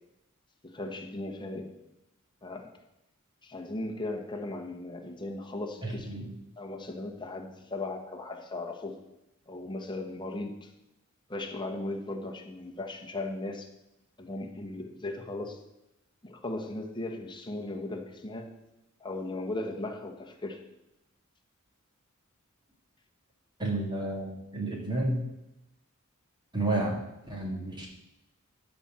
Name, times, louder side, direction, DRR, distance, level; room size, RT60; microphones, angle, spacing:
voice 1, 0.6-1.8 2.4-2.7 3.4-6.2 6.6-9.0 9.5-10.7 11.3-13.7 14.2-15.6 16.2-18.5 19.0-20.6, left 2 dB, 20° left, 3 dB, 1.2 m, -37 dB
voice 2, 5.8-6.3 23.6-24.3 24.5-25.3 26.5-27.9, right 2 dB, 20° right, -1 dB, 1.9 m, -31 dB
12.5 x 4.4 x 7.4 m, 0.91 s
head